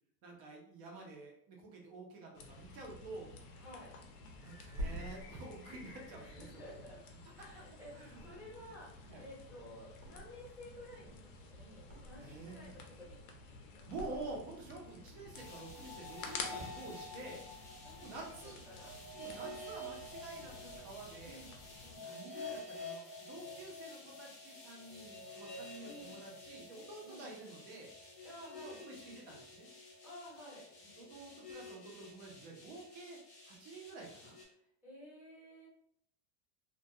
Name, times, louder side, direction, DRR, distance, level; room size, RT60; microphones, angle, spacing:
voice 1, 0.2-3.3 4.4-6.6 7.4-7.7 7.9-8.3 9.1-9.2 12.2-12.7 13.9-17.4 18.0-18.6 19.2-21.4 22.0-27.9 28.6-29.7 31.0-33.2 33.5-34.4, right 3 dB, 35° right, -1 dB, 0.5 m, -49 dB
sound 1, 2.3-22.0, left 4 dB, 90° left, 0.7 m, -52 dB
voice 2, 3.6-4.0 6.2-7.0 7.3-13.2 13.7-13.9 14.8-15.0 16.2-16.7 17.8-18.4 18.7-18.9 19.3-19.6 21.2-21.5 21.8-22.1 25.8-26.3 27.0-27.3 28.2-28.8 30.0-30.9 34.8-35.7, left 1 dB, 5° right, -9 dB, 0.8 m, -53 dB
Thump thud, 4.3-7.6 8.0-8.8 9.1-10.6 10.9-12.5 12.8-13.4 13.9-14.9 15.2-15.4, right 1 dB, 75° right, 0.9 m, -48 dB
sound 2, 15.3-34.4, left 2 dB, 25° left, 0.5 m, -50 dB
2.3 x 2.2 x 2.6 m, 0.68 s
supercardioid pair, 170°, 43 cm